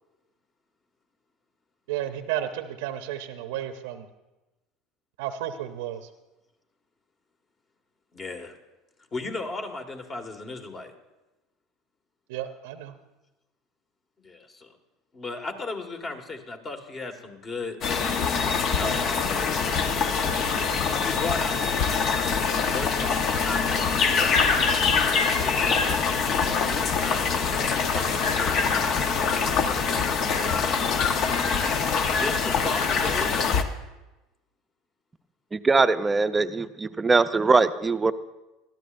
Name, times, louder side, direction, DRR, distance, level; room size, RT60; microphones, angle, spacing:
voice 1, 1.9-4.0 5.2-6.0 12.3-12.9 31.0-31.1, right 11 dB, 75° right, 9 dB, 0.7 m, -32 dB
voice 2, 8.1-8.5 9.1-10.9 14.2-14.7 15.1-17.8 18.8-19.7 21.0-22.1 22.7-24.7 25.3-29.3 30.3-31.1 31.7-33.3, left 3 dB, 35° left, 5 dB, 1.9 m, -37 dB
sound 1, 17.8-33.6, left 5 dB, 50° left, 1.0 m, -24 dB
Wind instrument woodwind instrument, 20.1-24.3 27.0-27.1, left 2 dB, 80° left, 2.5 m, -39 dB
voice 3, 35.5-38.1, right 4 dB, 20° right, 11 dB, 0.6 m, -21 dB
21.0 x 13.5 x 2.6 m, 1.0 s
hypercardioid pair, 90°, 0 cm